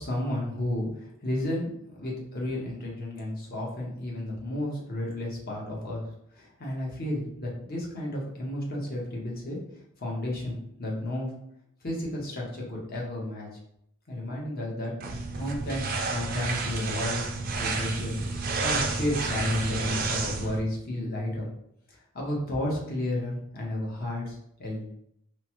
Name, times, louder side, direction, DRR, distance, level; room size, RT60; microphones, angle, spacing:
voice 1, 0.0-1.7 2.0-6.0 6.3-9.6 10.0-11.3 11.8-13.5 14.1-14.9 15.3-17.3 17.6-21.5 21.9-24.8, left 1 dB, 45° left, -2 dB, 0.8 m, -32 dB
sound 1, 15.0-20.6, right 3 dB, 40° right, 0.3 m, -30 dB
3.0 x 2.0 x 2.9 m, 0.74 s
head